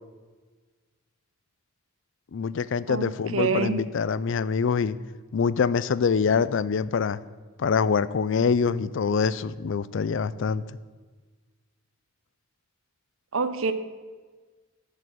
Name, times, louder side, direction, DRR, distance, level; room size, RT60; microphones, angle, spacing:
voice 1, 2.3-5.0 5.3-7.2 7.6-10.6, left 5 dB, 60° left, 17 dB, 0.4 m, -25 dB
voice 2, 2.9-3.8 13.3-13.7, right 4 dB, 70° right, 11 dB, 0.7 m, -26 dB
11.0 x 5.4 x 7.6 m, 1.4 s
head